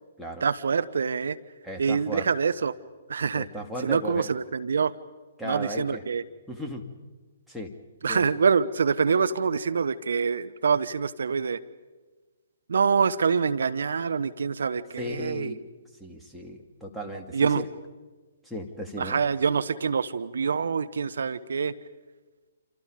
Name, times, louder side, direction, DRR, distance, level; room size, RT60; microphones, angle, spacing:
voice 1, 0.4-1.4 1.8-2.7 3.1-3.5 3.8-4.9 5.4-6.2 8.0-11.6 12.7-15.5 17.3-17.6 19.0-21.7, right 6 dB, 65° right, 12 dB, 0.9 m, -25 dB
voice 2, 1.6-2.3 3.3-4.3 5.4-6.0 6.5-6.8 7.5-7.7 8.1-8.3 15.0-15.6 16.0-17.7 18.4-19.2, equal, ahead, -1 dB, 2.7 m, -35 dB
28.5 x 27.5 x 5.2 m, 1.3 s
figure-of-eight pair, 130°, 0 cm